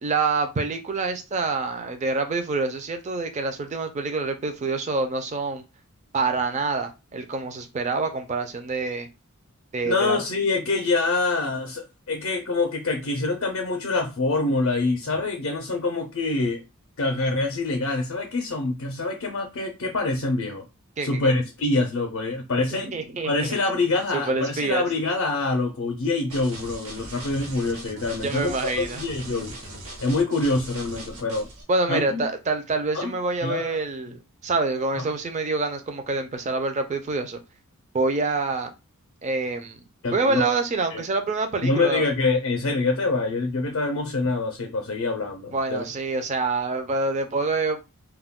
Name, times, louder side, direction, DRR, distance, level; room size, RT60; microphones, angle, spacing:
voice 1, 0.0-5.6 6.1-9.1 9.7-10.2 21.0-21.3 22.7-23.6 24.1-24.8 28.2-29.0 31.7-37.4 37.9-38.7 39.2-39.8 40.1-42.1 45.5-47.8, right 3 dB, 30° right, 0.4 m, -26 dB
voice 2, 9.8-16.6 17.0-20.6 21.0-22.9 23.2-29.6 30.0-31.5 31.9-32.2 32.9-33.1 33.4-33.8 35.0-35.1 40.0-40.4 40.9-41.0 41.6-45.8, left 3 dB, 60° left, 0.5 m, -25 dB
sound 1, 26.3-31.6, right 1 dB, 75° right, 0.8 m, -39 dB
2.2 x 2.1 x 3.5 m
head